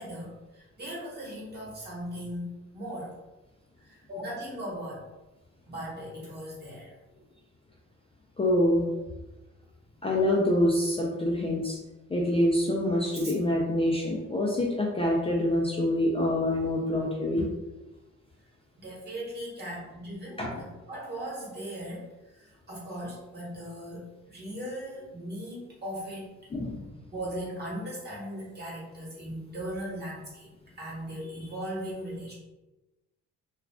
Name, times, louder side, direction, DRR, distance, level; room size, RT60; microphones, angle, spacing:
voice 1, 0.0-2.5 2.7-3.1 3.8-5.0 5.7-6.9 13.1-13.3 18.8-26.3 27.1-30.5 30.8-32.3, equal, 35° right, -5 dB, 1.3 m, -38 dB
voice 2, 8.4-8.8 10.0-11.8 12.1-17.5 20.4-20.5 26.5-26.8, left 1 dB, 20° left, -3 dB, 0.5 m, -26 dB
2.4 x 2.4 x 3.3 m, 1.1 s
cardioid pair, 90°, 30 cm